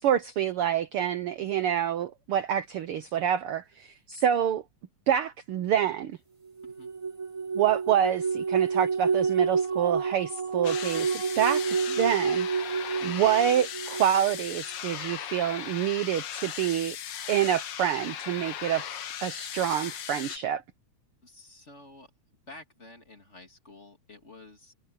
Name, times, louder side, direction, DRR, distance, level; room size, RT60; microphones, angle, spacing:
voice 1, 0.0-4.6 5.1-6.2 7.5-12.5 13.0-17.0 17.3-20.6, right 10 dB, 70° right, 1.4 m, -27 dB
sound 1, 6.6-14.4, right 5 dB, 20° right, 0.9 m, -29 dB
sound 2, 10.6-20.4, left 10 dB, 90° left, 1.0 m, -38 dB
voice 2, 21.2-22.1 22.5-24.7, left 2 dB, 25° left, 2.7 m, -50 dB
omnidirectional pair, 3.4 m